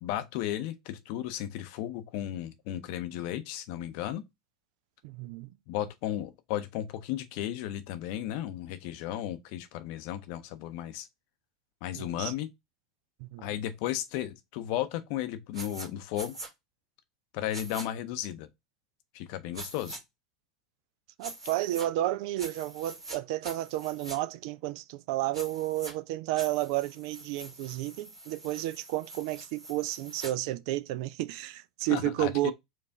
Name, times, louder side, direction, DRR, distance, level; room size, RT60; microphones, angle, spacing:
voice 1, 0.0-4.2 5.7-11.1 11.8-12.5 13.4-16.4 17.3-18.5 19.1-20.0 31.9-32.5, left 12 dB, 60° left, 0.6 m, -34 dB
voice 2, 5.0-5.5 12.0-12.3 13.2-13.5 21.2-32.5, right 16 dB, 60° right, 0.3 m, -32 dB
sound 1, 15.5-15.9 16.1-16.5 17.5-17.9 19.5-20.0 21.2-21.9 22.4-23.2 23.4-24.2 25.3-25.9 26.4-30.3, right 2 dB, 80° right, 1.3 m, -44 dB
4.5 x 2.4 x 3.4 m
hypercardioid pair, 85°, 3 cm